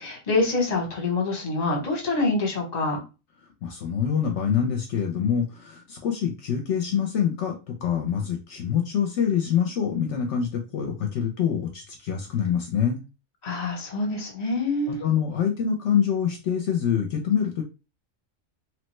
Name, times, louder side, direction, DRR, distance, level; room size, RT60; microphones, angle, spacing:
voice 1, 0.0-3.0 13.4-15.0, left 2 dB, 35° left, 1 dB, 0.9 m, -26 dB
voice 2, 3.6-13.0 14.9-17.6, left 8 dB, 70° left, 3 dB, 0.8 m, -25 dB
3.2 x 2.1 x 3.0 m, 0.30 s
omnidirectional pair, 1.3 m